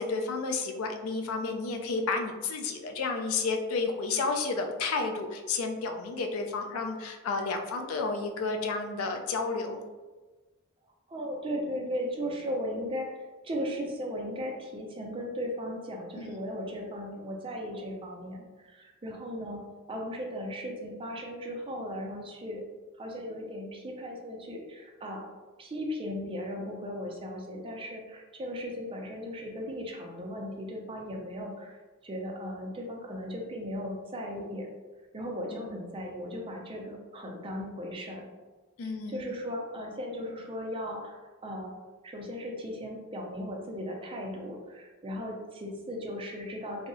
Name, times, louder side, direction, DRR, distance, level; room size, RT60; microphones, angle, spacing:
voice 1, 0.0-9.8 16.1-16.3 35.5-35.7 38.8-39.2, left 4 dB, 75° left, 4 dB, 0.4 m, -31 dB
voice 2, 11.1-22.6 23.0-25.2 25.6-34.7 35.1-38.3 38.8-41.7 42.0-46.9, equal, 25° right, 0 dB, 0.4 m, -37 dB
2.6 x 2.0 x 2.5 m, 1.3 s
head